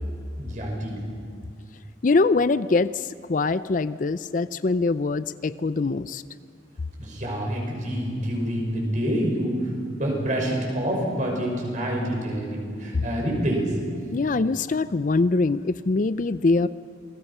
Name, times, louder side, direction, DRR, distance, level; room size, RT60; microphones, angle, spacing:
voice 1, 0.4-1.0 7.0-13.7, equal, 40° right, 0 dB, 5.7 m, -27 dB
voice 2, 2.0-6.2 12.9-13.0 14.1-16.7, left 3 dB, 40° left, 15 dB, 0.4 m, -23 dB
28.0 x 20.5 x 5.5 m, 2.4 s
head